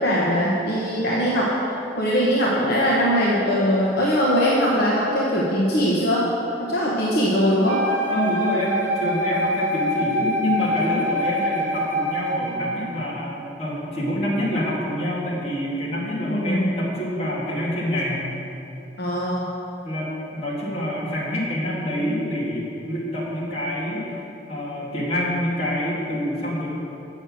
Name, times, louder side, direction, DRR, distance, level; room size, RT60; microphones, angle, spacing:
voice 1, 0.0-1.5 2.0-6.3 6.6-7.9 16.3-16.7 19.0-19.4, equal, 60° left, -5 dB, 1.0 m, -21 dB
Wind instrument woodwind instrument, 7.6-12.7, equal, 10° left, 2.0 m, -25 dB
voice 2, 8.1-13.3 13.6-18.3 19.8-26.7, left 1 dB, 35° left, -7 dB, 2.3 m, -26 dB
7.9 x 6.4 x 6.3 m, 2.9 s
head